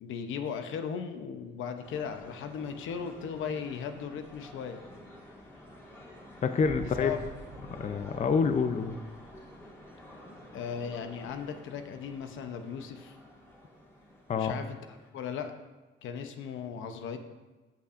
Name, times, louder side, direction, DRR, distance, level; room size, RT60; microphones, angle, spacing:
voice 1, 0.0-4.8 6.8-7.2 10.5-13.2 14.3-14.8 15.1-15.5 16.0-17.2, left 7 dB, 80° left, 7 dB, 0.8 m, -37 dB
sound 1, 1.8-15.1, left 1 dB, 15° left, 2.1 m, -51 dB
voice 2, 6.4-7.1 7.8-9.0 14.3-14.5, left 5 dB, 35° left, 8 dB, 0.5 m, -27 dB
Boom, 6.6-9.5, right 3 dB, 75° right, 2.5 m, -47 dB
14.5 x 5.6 x 2.5 m, 1.2 s
cardioid pair, 90°, 20 cm